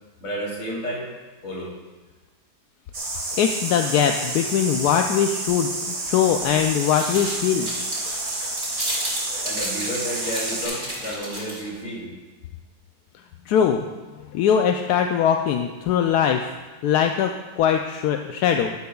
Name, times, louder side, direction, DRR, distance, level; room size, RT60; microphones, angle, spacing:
voice 1, 0.2-1.1 1.4-1.7 9.4-12.1, equal, 50° left, -4 dB, 3.1 m, -31 dB
sound 1, 2.9-10.7, right 2 dB, 60° right, 2.1 m, -30 dB
voice 2, 3.3-7.7 13.5-13.8 14.3-16.6 16.8-18.7, left 8 dB, 85° left, 4 dB, 1.1 m, -21 dB
sound 2, 6.1-11.8, right 1 dB, 40° right, 4.0 m, -32 dB
12.0 x 11.5 x 2.3 m, 1.3 s
omnidirectional pair, 1.7 m